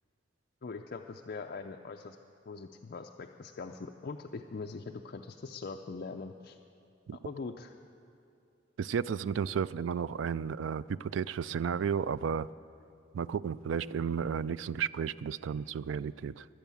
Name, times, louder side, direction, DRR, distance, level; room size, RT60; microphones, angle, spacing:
voice 1, 0.6-2.2 2.5-6.6 7.2-7.7, left 4 dB, 50° left, 3 dB, 0.5 m, -42 dB
voice 2, 8.8-12.5 13.1-16.5, right 7 dB, 75° right, 17 dB, 0.3 m, -33 dB
22.5 x 8.2 x 7.1 m, 2.6 s
head